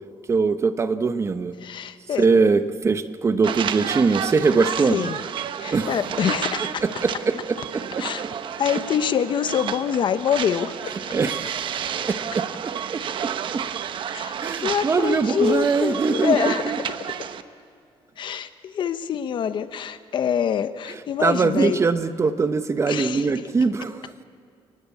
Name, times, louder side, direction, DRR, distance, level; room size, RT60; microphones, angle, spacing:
voice 1, 0.3-1.5 2.2-5.1 5.7-6.0 6.8-7.3 7.7-8.0 11.1-11.7 12.1-13.6 14.4-16.8 21.2-24.0, right 4 dB, 30° right, 11 dB, 1.0 m, -22 dB
voice 2, 1.6-2.3 4.9-5.2 5.6-6.8 8.0-8.2 8.6-10.9 14.1-14.3 14.6-16.7 18.2-21.8 22.9-23.3, left 8 dB, 55° left, 12 dB, 1.0 m, -25 dB
sound 1, 3.4-17.4, right 8 dB, 55° right, 1.0 m, -31 dB
30.0 x 19.0 x 8.5 m, 2.6 s
cardioid pair, 135°, 10 cm